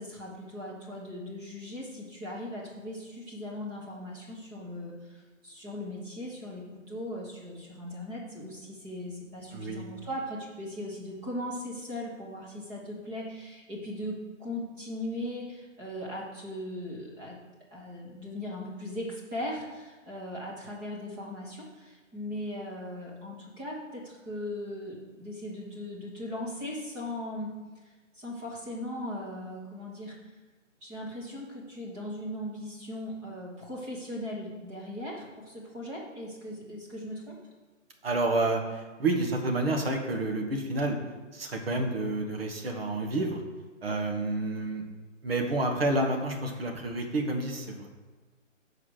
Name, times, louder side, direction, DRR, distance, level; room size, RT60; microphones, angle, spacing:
voice 1, 0.0-17.4 17.7-27.5 27.8-30.1 30.8-37.4, left 1 dB, 10° right, -5 dB, 1.3 m, -38 dB
voice 2, 9.5-9.8 38.0-41.0 41.3-43.4 43.8-44.8 45.2-47.9, right 2 dB, 50° right, 3 dB, 1.6 m, -29 dB
7.3 x 4.9 x 6.4 m, 1.3 s
figure-of-eight pair, 145°, 38 cm